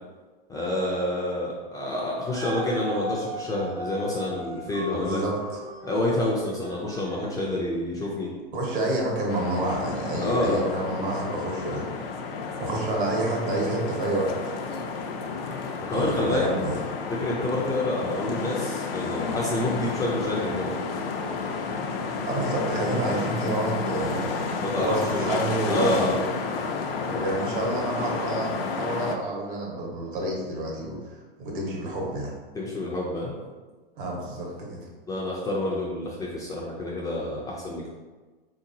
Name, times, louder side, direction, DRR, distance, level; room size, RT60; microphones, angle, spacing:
voice 1, 0.5-5.2 5.8-8.3 10.2-10.6 15.9-16.4 17.1-20.8 24.6-25.3 25.7-26.2 32.5-33.4 35.1-37.9, left 1 dB, 10° left, -5 dB, 0.4 m, -28 dB
Dog, 2.1-7.4 8.0-8.1, right 1 dB, 80° right, 0.6 m, -37 dB
voice 2, 5.0-5.3 8.5-11.9 12.6-14.3 15.9-16.8 22.2-24.2 24.8-26.0 27.0-31.0 31.4-32.3 34.0-34.8, right 1 dB, 55° right, -2 dB, 1.3 m, -28 dB
sound 1, 9.3-29.2, left 4 dB, 65° left, 0.5 m, -31 dB
3.5 x 2.9 x 2.7 m, 1.3 s
hypercardioid pair, 120°, 30 cm